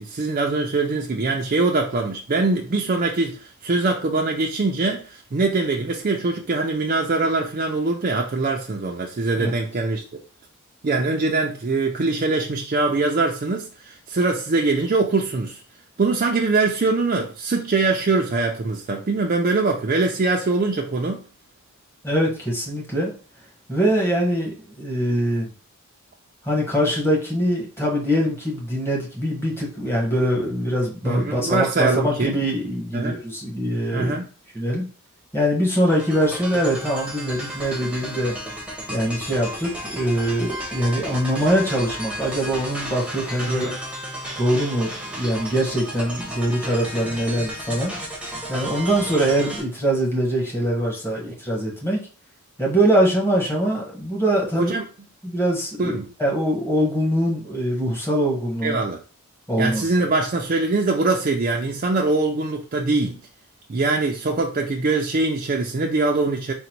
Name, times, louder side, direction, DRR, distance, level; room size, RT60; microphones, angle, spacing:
voice 1, 0.0-10.0 10.8-15.6 16.0-21.2 31.0-32.4 32.9-33.2 33.9-34.3 43.5-43.8 54.6-54.8 55.8-56.1 58.6-59.0 59.6-63.2 63.7-66.5, right 3 dB, 40° right, 0.4 m, -23 dB
voice 2, 22.0-23.1 23.7-25.5 26.4-34.2 34.5-34.9 35.3-38.3 38.9-43.7 44.4-48.0 48.5-52.0 52.6-54.7 55.2-55.9 56.2-58.8 59.5-60.1, equal, 10° left, 1.2 m, -23 dB
sound 1, 35.9-49.6, equal, 5° right, 0.8 m, -33 dB
3.8 x 2.1 x 4.4 m
head